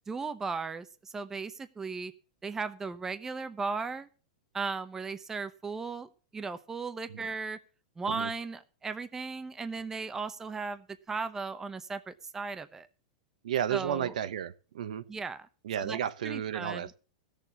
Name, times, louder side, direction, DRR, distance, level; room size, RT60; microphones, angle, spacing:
voice 1, 0.1-2.1 2.4-4.1 4.5-7.6 8.0-12.9 13.7-14.1 15.1-15.5 15.8-16.0 16.2-16.9, right 4 dB, 10° right, 0.8 m, -36 dB
voice 2, 13.4-15.0 15.6-17.0, right 9 dB, 80° right, 1.1 m, -33 dB
15.5 x 6.9 x 7.0 m
supercardioid pair, 150°, 4 cm